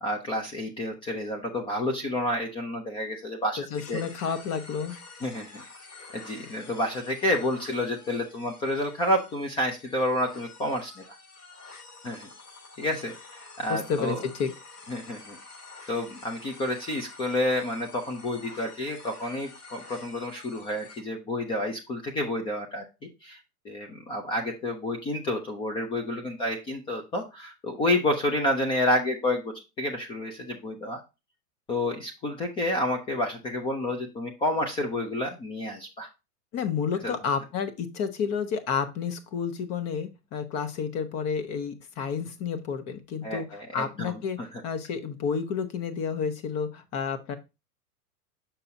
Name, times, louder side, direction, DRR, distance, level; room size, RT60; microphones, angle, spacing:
voice 1, 0.0-4.0 5.2-5.6 6.1-11.0 12.0-12.3 12.8-14.2 14.9-15.4 15.9-22.8 23.2-23.4 23.6-31.0 31.7-36.1 37.0-37.1 43.2-44.1 44.4-44.5, left 1 dB, 15° left, 4 dB, 0.4 m, -29 dB
voice 2, 3.6-4.9 13.7-14.5 36.5-44.4 44.6-47.4, left 6 dB, 35° left, 10 dB, 1.0 m, -30 dB
sound 1, 3.7-21.0, left 3 dB, 85° left, 2.9 m, -48 dB
6.7 x 5.7 x 2.6 m, 0.26 s
hypercardioid pair, 125°, 45 cm